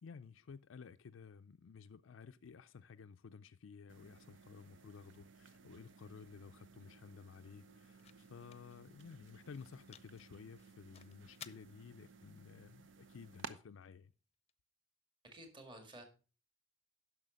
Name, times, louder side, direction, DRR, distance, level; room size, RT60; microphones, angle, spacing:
voice 1, 0.0-14.1, left 5 dB, 80° left, 0.4 m, -54 dB
sound 1, 3.9-13.5, right 5 dB, 70° right, 0.8 m, -57 dB
sound 2, 6.6-14.5, left 8 dB, 35° left, 0.6 m, -62 dB
voice 2, 15.2-16.0, right 1 dB, 25° right, 1.9 m, -53 dB
11.0 x 6.4 x 5.0 m
head